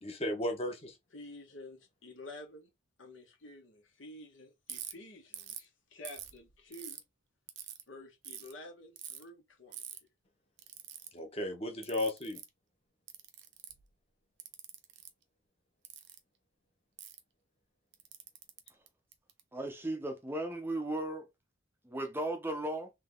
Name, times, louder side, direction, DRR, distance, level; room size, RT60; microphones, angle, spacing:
voice 1, 0.0-1.0 11.1-12.4, left 1 dB, 30° left, 1.2 m, -35 dB
voice 2, 1.1-2.7 3.0-7.0 7.9-10.1, left 1 dB, 70° left, 1.5 m, -50 dB
Ratchet pawl, 4.7-4.9 5.3-5.7 6.1-7.0 7.5-7.8 8.2-8.5 9.0-9.2 9.7-10.0 10.6-11.1 11.8-12.5 13.1-13.9 14.4-15.1 15.8-16.2 17.0-17.2 17.9-19.4, right 11 dB, 60° right, 0.8 m, -45 dB
voice 3, 19.5-21.2 21.8-22.9, right 1 dB, 10° right, 0.7 m, -36 dB
3.7 x 3.3 x 3.7 m
head